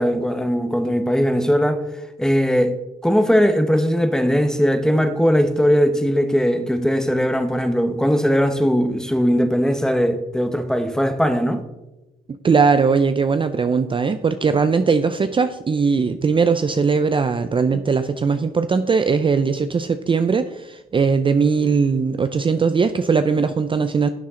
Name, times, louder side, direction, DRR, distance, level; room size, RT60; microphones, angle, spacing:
voice 1, 0.0-1.8 2.2-2.7 3.0-11.6, equal, 5° left, 1.1 m, -19 dB
voice 2, 12.3-24.1, right 5 dB, 30° right, 0.5 m, -19 dB
11.5 x 7.3 x 3.8 m
cardioid pair, 85°, 17 cm